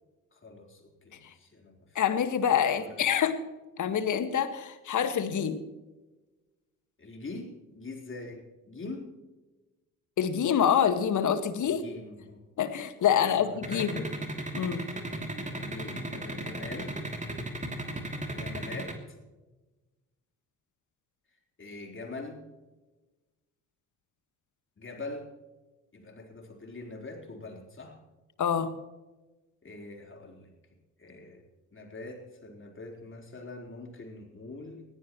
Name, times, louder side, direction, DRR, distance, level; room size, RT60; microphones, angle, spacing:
voice 1, 0.3-2.0 2.7-3.0 7.0-9.1 11.6-12.4 13.4-14.1 15.5-17.0 18.3-19.2 21.6-22.4 24.8-25.3 25.9-28.0 29.6-30.5 31.0-31.4 31.7-34.8, left 2 dB, 30° left, 1 dB, 4.1 m, -43 dB
voice 2, 2.0-3.4 3.8-5.6 10.2-11.8 12.6-14.0 14.5-14.8 28.4-28.7, left 8 dB, 45° left, 10 dB, 1.7 m, -26 dB
sound 1, 13.6-18.9, right 1 dB, 15° right, 2.9 m, -35 dB
20.5 x 16.0 x 3.1 m, 1.2 s
figure-of-eight pair, 50°, 41 cm